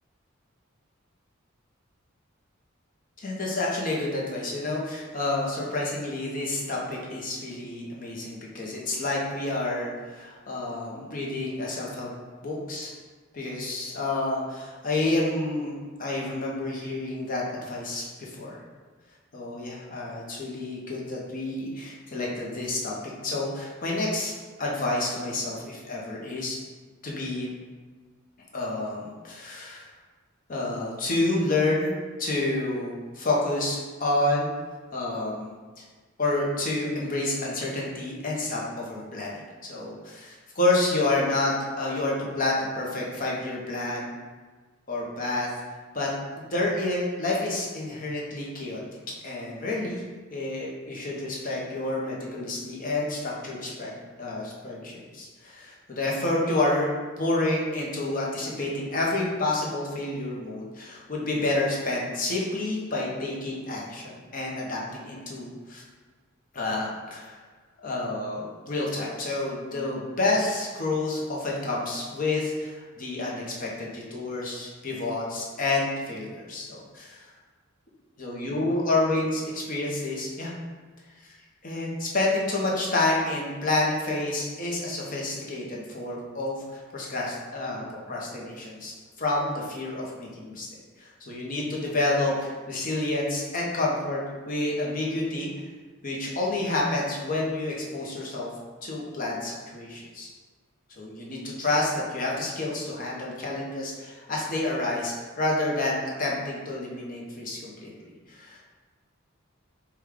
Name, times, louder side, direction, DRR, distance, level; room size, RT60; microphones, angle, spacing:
voice 1, 3.2-12.1 12.4-12.9 13.3-18.6 19.3-22.9 23.2-24.3 24.6-26.6 27.0-27.5 28.5-29.9 30.5-31.9 32.2-34.5 34.9-35.5 35.8-35.9 36.2-44.1 44.9-45.5 45.9-46.1 46.4-48.8 49.2-50.0 50.3-53.9 54.2-56.9 57.2-65.8 66.5-67.4 67.8-77.3 78.2-80.5 81.6-88.9 89.2-90.7 91.0-95.6 96.0-98.5 98.8-100.3 101.0-108.6, left 2 dB, 40° left, -3 dB, 0.8 m, -29 dB
4.9 x 2.3 x 3.5 m, 1.4 s
head